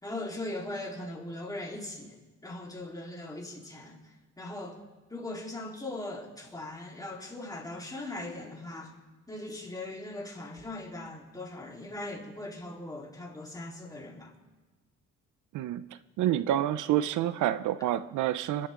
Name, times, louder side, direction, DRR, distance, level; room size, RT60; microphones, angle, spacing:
voice 1, 0.0-2.1 2.4-4.8 5.1-8.9 9.3-14.3, left 2 dB, 10° left, -2 dB, 3.7 m, -40 dB
voice 2, 15.5-15.9 16.2-18.7, right 12 dB, 80° right, 14 dB, 0.6 m, -28 dB
27.0 x 11.0 x 3.7 m, 1.2 s
cardioid pair, 90°, 30 cm